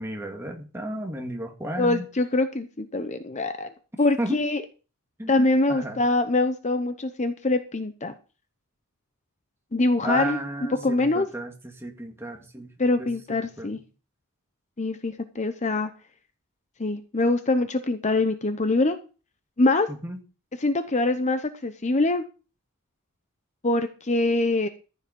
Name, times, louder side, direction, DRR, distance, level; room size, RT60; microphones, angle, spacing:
voice 1, 0.0-2.1 4.2-4.4 5.2-5.3 5.7-6.0 10.0-12.7 13.0-13.7 19.9-20.2, right 1 dB, 10° right, 2 dB, 2.1 m, -33 dB
voice 2, 1.8-3.7 4.0-4.6 5.3-8.1 9.7-11.3 12.8-13.8 14.8-15.9 16.8-19.0 19.6-19.9 20.6-22.2 23.6-24.7, left 2 dB, 30° left, 9 dB, 0.8 m, -24 dB
14.0 x 7.1 x 5.4 m, 0.34 s
head